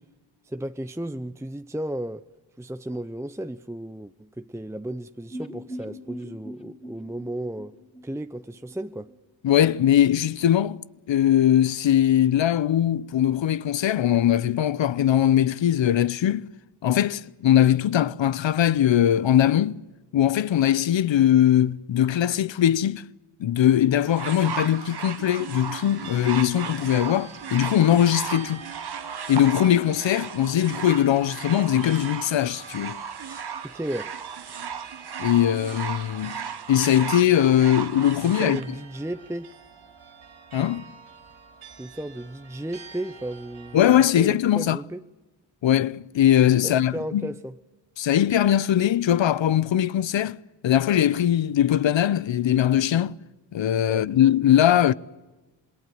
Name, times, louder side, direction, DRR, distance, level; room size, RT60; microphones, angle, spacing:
voice 1, 0.4-2.2 2.6-7.7 8.0-9.1 33.6-34.1 38.2-39.5 41.8-45.0 46.6-47.6 53.9-54.1, right 1 dB, 5° right, 0.7 m, -34 dB
sound 1, 5.3-9.2 9.4-9.5 9.8-9.9, equal, 15° left, 2.5 m, -41 dB
voice 2, 9.4-10.8 11.1-16.5 16.8-19.8 20.1-23.0 23.4-28.6 29.3-33.0 35.2-36.4 36.7-38.6 40.5-40.8 43.7-44.8 45.6-47.2 48.0-50.4 50.6-53.1 53.5-54.9, left 11 dB, 65° left, 0.8 m, -21 dB
sound 2, 24.0-38.6 39.5-39.6, right 7 dB, 50° right, 1.3 m, -35 dB
sound 3, 25.8-43.8, right 6 dB, 75° right, 4.5 m, -46 dB
27.5 x 19.5 x 7.8 m
cardioid pair, 55°, 48 cm